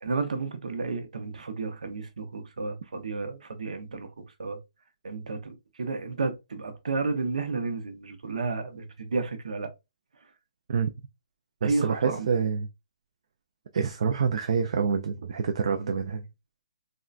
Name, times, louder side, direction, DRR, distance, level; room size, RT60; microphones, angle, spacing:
voice 1, 0.0-4.1 4.4-4.6 5.0-9.7 11.6-12.3, right 4 dB, 90° right, 0.8 m, -32 dB
voice 2, 11.6-12.7 13.7-16.3, right 6 dB, 50° right, 0.4 m, -27 dB
3.6 x 2.1 x 2.4 m
hypercardioid pair, 170°, 4 cm